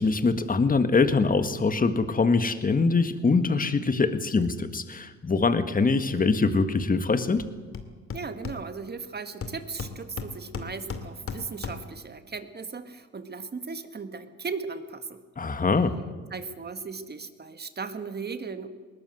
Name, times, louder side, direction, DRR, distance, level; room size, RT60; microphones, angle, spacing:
voice 1, 0.0-7.4 15.4-16.0, left 4 dB, 30° left, 10 dB, 1.8 m, -23 dB
Hammer, 7.4-7.5 7.7-9.0 9.4-12.0, left 5 dB, 45° left, 2.4 m, -37 dB
voice 2, 8.1-15.2 16.3-18.7, right 4 dB, 35° right, 9 dB, 1.9 m, -37 dB
20.5 x 18.5 x 7.8 m, 1.4 s
cardioid pair, 90°, 30 cm